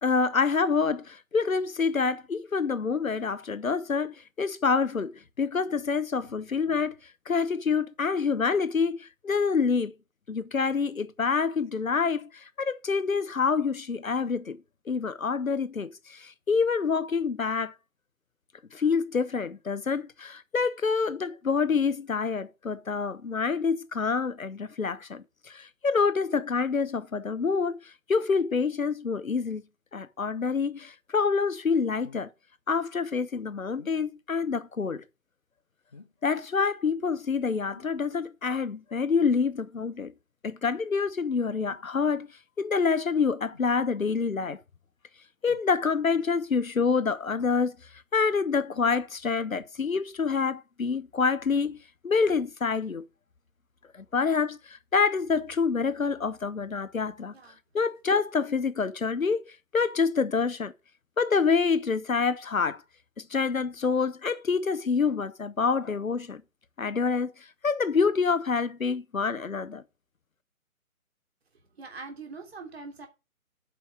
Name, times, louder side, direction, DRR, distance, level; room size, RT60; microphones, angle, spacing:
voice 1, 0.0-7.0 7.3-9.9 10.3-14.6 14.9-17.7 18.7-29.6 29.9-32.3 32.7-35.0 36.2-40.1 40.4-42.3 42.6-44.6 45.4-47.8 48.1-51.8 52.0-53.0 54.0-57.3 57.7-59.4 59.7-60.7 61.2-62.8 63.3-66.4 66.8-67.3 67.6-69.8, left 5 dB, 70° left, 1.0 m, -27 dB
sound 1, 32.0-32.4 33.8-34.0 35.9-36.3 37.7-38.0 39.8-40.0 41.7-41.9 43.5-43.7 45.4-45.7 47.4-47.9 49.5-49.8 50.6-50.7, left 4 dB, 25° left, 0.7 m, -51 dB
voice 2, 71.8-73.1, right 4 dB, 45° right, 3.0 m, -42 dB
7.6 x 5.6 x 6.5 m
figure-of-eight pair, 145°, 43 cm